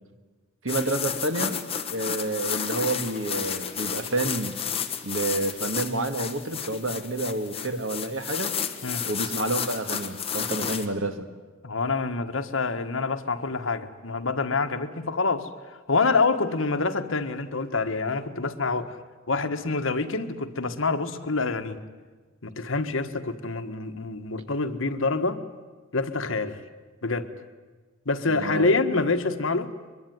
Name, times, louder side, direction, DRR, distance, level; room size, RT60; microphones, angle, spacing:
voice 1, 0.6-1.6 1.9-4.6 5.0-8.5 9.1-11.3 28.3-28.7, right 2 dB, 75° right, 7 dB, 2.1 m, -29 dB
sound 1, 0.7-10.9, left 7 dB, 30° left, 1.5 m, -32 dB
voice 2, 11.6-19.0 19.3-21.8 22.4-25.4 25.9-26.6 27.0-27.3 28.0-29.7, left 3 dB, 75° left, 7 dB, 1.5 m, -26 dB
23.0 x 22.5 x 9.5 m, 1.3 s
head